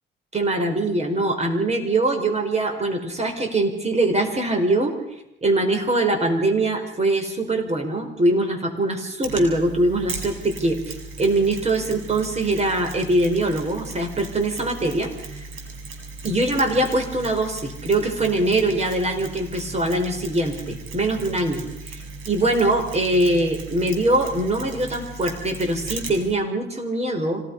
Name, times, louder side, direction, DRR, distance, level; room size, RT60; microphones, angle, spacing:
voice 1, 0.3-4.9 5.4-15.1 16.2-27.4, right 2 dB, 35° right, 4 dB, 5.1 m, -22 dB
Mechanisms, 9.2-26.3, right 3 dB, 80° right, 6.9 m, -37 dB
26.5 x 18.5 x 5.6 m, 0.88 s
cardioid pair, 90°, 20 cm